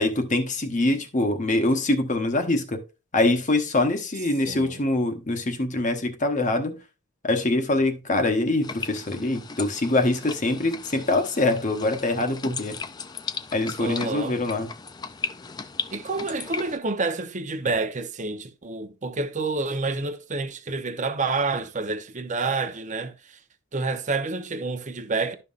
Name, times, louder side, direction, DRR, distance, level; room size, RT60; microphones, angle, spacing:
voice 1, 0.0-2.8 3.1-6.8 7.2-12.8 13.5-14.7, left 2 dB, 35° left, 0.9 m, -24 dB
voice 2, 4.5-4.8 13.8-14.4 15.9-23.4 23.7-25.4, right 3 dB, 35° right, 0.8 m, -28 dB
sound 1, 8.6-16.8, left 5 dB, 20° left, 0.4 m, -36 dB
11.5 x 5.5 x 2.5 m
head